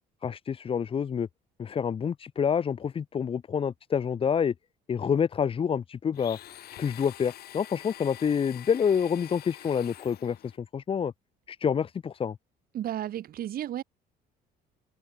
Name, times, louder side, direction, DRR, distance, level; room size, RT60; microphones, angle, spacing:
voice 1, 0.2-1.3 1.6-4.5 4.9-6.4 6.8-11.1 11.5-12.4, left 7 dB, 35° left, 0.8 m, -28 dB
Domestic sounds home sounds, 6.1-10.6, left 13 dB, 65° left, 5.4 m, -46 dB
voice 2, 12.7-13.8, right 11 dB, 60° right, 4.2 m, -33 dB
open air
cardioid pair, 110°, 17 cm